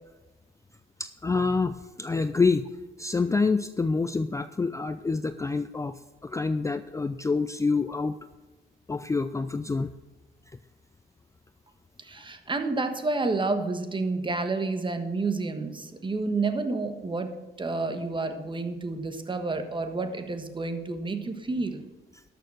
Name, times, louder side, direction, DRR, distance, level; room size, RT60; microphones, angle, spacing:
voice 1, 1.0-2.7 3.0-8.2 8.9-9.9, left 4 dB, 15° left, 12 dB, 0.4 m, -27 dB
voice 2, 12.0-21.8, right 3 dB, 25° right, 7 dB, 1.4 m, -30 dB
13.0 x 6.8 x 6.2 m, 1.1 s
cardioid pair, 90°, 20 cm